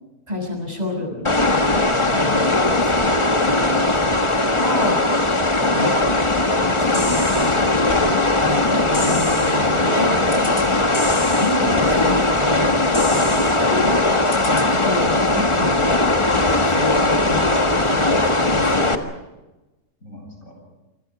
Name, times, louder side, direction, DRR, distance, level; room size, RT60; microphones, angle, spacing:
voice 1, 0.3-5.1 5.7-6.1 6.6-7.7 8.4-16.2 16.7-19.0, left 1 dB, 30° right, 2 dB, 6.8 m, -30 dB
sound 1, 1.2-18.9, left 2 dB, 20° left, 1.5 m, -19 dB
sound 2, 6.9-7.6 8.9-9.6 10.3-10.7 10.9-11.6 12.9-13.6 14.3-14.7, left 3 dB, 65° left, 3.5 m, -32 dB
sound 3, 11.8-13.4 14.7-14.8 16.3-18.0, left 1 dB, 45° left, 7.1 m, -37 dB
voice 2, 20.0-20.7, left 1 dB, 85° left, 2 dB, 8.6 m, -42 dB
27.0 x 26.5 x 4.9 m, 1.0 s
omnidirectional pair, 1.4 m